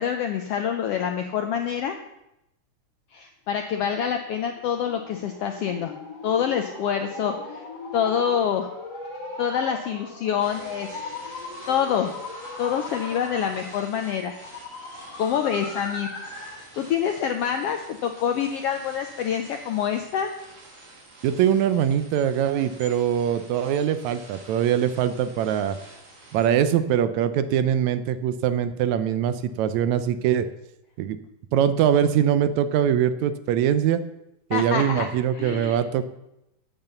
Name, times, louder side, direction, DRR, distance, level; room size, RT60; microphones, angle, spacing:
voice 1, 0.0-1.9 3.1-5.9 6.2-7.6 7.9-8.7 9.4-11.0 11.7-12.1 12.6-14.4 15.2-16.1 16.8-20.3 34.5-35.1 35.3-35.8, left 8 dB, 85° left, 5 dB, 1.3 m, -26 dB
sound 1, 4.2-16.7, left 3 dB, 55° left, 3.2 m, -39 dB
sound 2, 10.4-26.5, right 1 dB, 60° right, 3.7 m, -48 dB
voice 2, 21.2-25.8 26.3-30.5 31.0-31.2 31.5-34.0 34.5-36.0, right 9 dB, 75° right, 11 dB, 1.8 m, -22 dB
8.9 x 8.1 x 6.8 m, 0.88 s
omnidirectional pair, 3.5 m